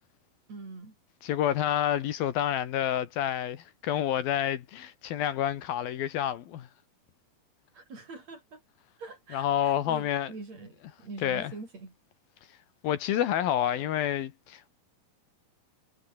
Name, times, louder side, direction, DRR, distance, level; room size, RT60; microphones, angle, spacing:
voice 1, 0.5-1.0 7.7-8.6 9.0-12.0, right 3 dB, 45° right, 7.9 m, -44 dB
voice 2, 1.2-6.7 9.3-10.3 11.2-11.5 12.8-14.7, left 10 dB, 70° left, 3.2 m, -28 dB
omnidirectional pair, 4.5 m